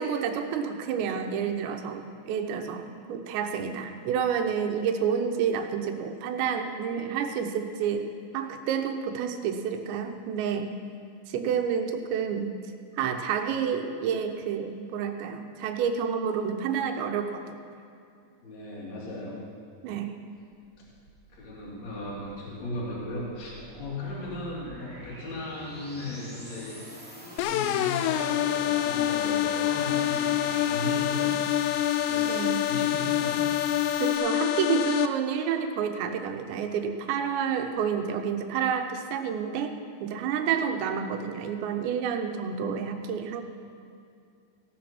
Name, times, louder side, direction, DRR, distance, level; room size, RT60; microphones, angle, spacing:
voice 1, 0.0-8.1 8.3-10.7 11.3-12.5 13.0-17.5 19.8-20.2 32.3-32.7 34.0-43.4, right 7 dB, 90° right, 6 dB, 3.2 m, -29 dB
voice 2, 18.4-19.4 21.3-26.8 27.3-31.7 32.0-32.4 32.7-33.4, left 2 dB, 45° left, -6 dB, 3.9 m, -37 dB
sound 1, 20.6-34.2, equal, 5° left, 0.8 m, -45 dB
sound 2, 27.4-35.1, left 12 dB, 85° left, 2.8 m, -26 dB
16.0 x 10.5 x 6.0 m, 2.4 s
omnidirectional pair, 5.0 m